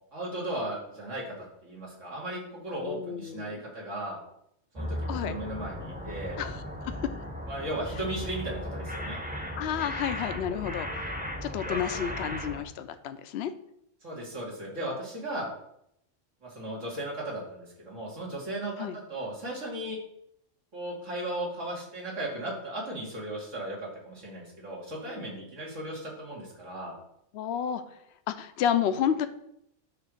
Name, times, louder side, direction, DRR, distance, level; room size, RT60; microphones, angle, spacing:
voice 1, 0.1-4.2 4.7-6.4 7.5-9.2 14.0-15.5 16.4-20.0 20.7-27.0, right 1 dB, 75° right, -4 dB, 2.8 m, -36 dB
voice 2, 2.8-3.6 5.1-5.4 6.4-6.6 9.6-11.1 11.4-13.5 18.8-19.0 27.3-27.8 28.3-29.3, left 9 dB, 65° left, 10 dB, 0.8 m, -30 dB
sound 1, 4.8-12.6, equal, 10° right, 0.9 m, -36 dB
9.9 x 3.3 x 6.5 m, 0.76 s
omnidirectional pair, 1.3 m